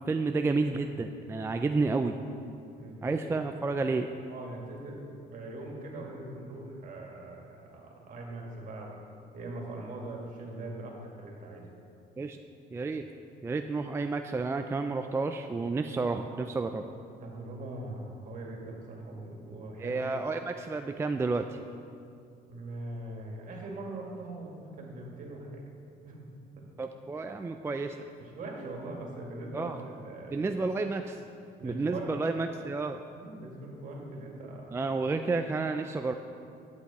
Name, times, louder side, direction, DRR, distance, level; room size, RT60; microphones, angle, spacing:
voice 1, 0.1-2.2 3.0-4.1 12.2-12.4 12.7-13.1 13.4-16.8 19.8-21.6 26.8-28.0 29.5-29.8 30.3-31.2 31.6-33.0 34.7-36.1, right 3 dB, 15° right, 6 dB, 0.3 m, -30 dB
voice 2, 2.7-3.2 4.3-5.0 5.3-9.0 9.3-11.6 17.2-20.0 22.5-25.6 26.0-26.2 26.6-26.7 28.2-30.5 31.6-32.1 33.2-34.8, right 2 dB, 50° right, -1 dB, 2.1 m, -41 dB
9.9 x 8.3 x 4.2 m, 2.5 s
cardioid pair, 110°, 17 cm